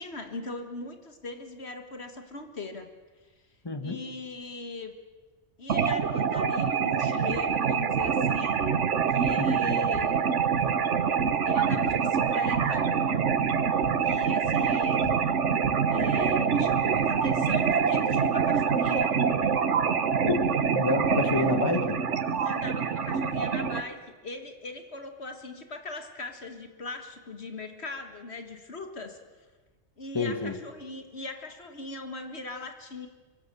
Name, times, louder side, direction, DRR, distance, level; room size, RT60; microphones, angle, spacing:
voice 1, 0.0-2.9 3.8-4.9 5.6-8.6 9.1-10.2 11.5-12.9 14.0-15.1 15.9-19.2 22.3-29.2 30.0-33.1, left 3 dB, 60° left, 6 dB, 1.9 m, -40 dB
voice 2, 3.6-4.0 9.4-9.5 20.3-20.4 20.7-22.0 30.1-30.6, left 2 dB, 20° left, 7 dB, 1.6 m, -28 dB
sound 1, 5.7-23.8, right 6 dB, 75° right, 1.4 m, -25 dB
sound 2, 7.3-7.5 8.0-8.2 8.6-9.6 9.9-10.2 10.4-10.9 11.2-12.1 12.4-12.7 13.1-13.3 13.8-14.1 14.4-16.5, left 4 dB, 75° left, 1.9 m, -44 dB
25.5 x 23.0 x 6.8 m, 1.3 s
omnidirectional pair, 1.2 m